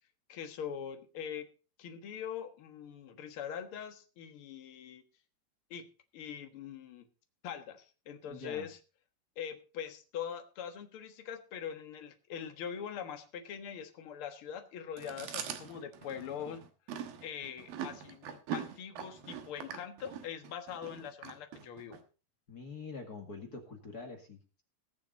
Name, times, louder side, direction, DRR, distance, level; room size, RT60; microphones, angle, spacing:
voice 1, 0.3-1.5 1.8-5.0 5.7-5.9 6.1-7.0 7.4-8.8 9.3-16.6 17.2-22.0, left 8 dB, 60° left, 7 dB, 1.5 m, -42 dB
voice 2, 8.3-8.7 22.5-24.6, left 4 dB, 35° left, 3 dB, 1.8 m, -45 dB
Chewing mastication, 15.0-22.0, right 8 dB, 75° right, 3.0 m, -43 dB
20.5 x 7.3 x 4.0 m, 0.34 s
omnidirectional pair, 4.3 m